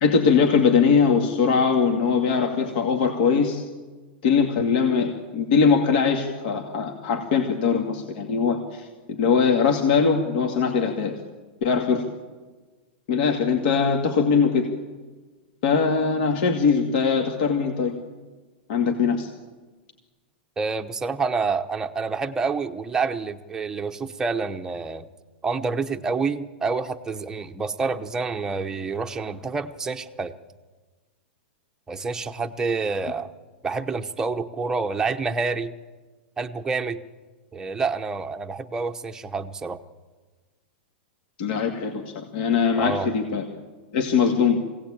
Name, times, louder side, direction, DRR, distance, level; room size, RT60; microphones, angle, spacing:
voice 1, 0.0-3.6 4.2-11.1 11.6-12.1 13.1-14.7 15.6-18.0 18.7-19.3 41.4-43.4 43.9-44.6, left 5 dB, 55° left, 2 dB, 2.3 m, -21 dB
voice 2, 20.6-25.1 25.4-30.3 31.9-33.3 33.6-35.7 36.4-37.0 37.5-39.8 42.8-43.1, right 4 dB, 10° right, 6 dB, 0.9 m, -28 dB
23.0 x 17.5 x 8.8 m, 1.3 s
supercardioid pair, 150°, 6 cm